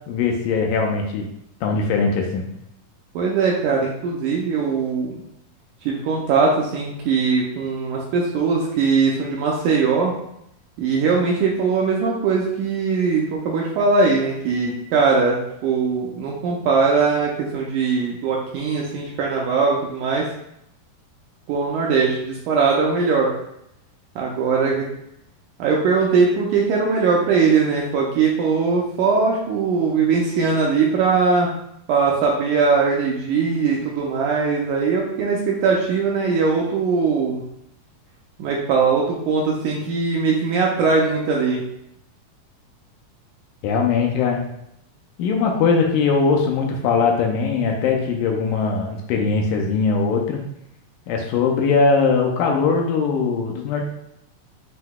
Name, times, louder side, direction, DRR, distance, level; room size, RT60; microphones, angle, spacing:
voice 1, 0.1-1.3 1.6-2.5 43.6-44.4 45.2-50.4 51.1-53.8, left 5 dB, 80° left, 2 dB, 2.0 m, -20 dB
voice 2, 3.2-5.2 5.9-10.1 10.8-20.2 21.5-23.3 24.2-24.9 25.6-31.5 31.9-37.4 38.4-41.6, right 4 dB, 85° right, -2 dB, 1.8 m, -20 dB
7.7 x 2.7 x 2.3 m, 0.78 s
omnidirectional pair, 4.0 m